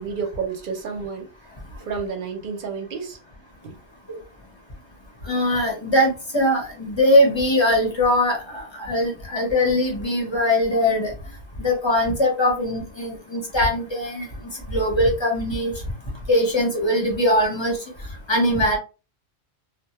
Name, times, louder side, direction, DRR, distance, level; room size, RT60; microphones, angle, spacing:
voice 1, 0.0-1.3 1.8-3.2 3.6-3.8, right 5 dB, 55° right, 0.7 m, -30 dB
voice 2, 5.3-11.1 11.6-14.3 14.7-15.7 16.3-17.8 18.3-18.8, left 1 dB, 30° left, 0.7 m, -21 dB
2.1 x 2.0 x 2.8 m
omnidirectional pair, 1.2 m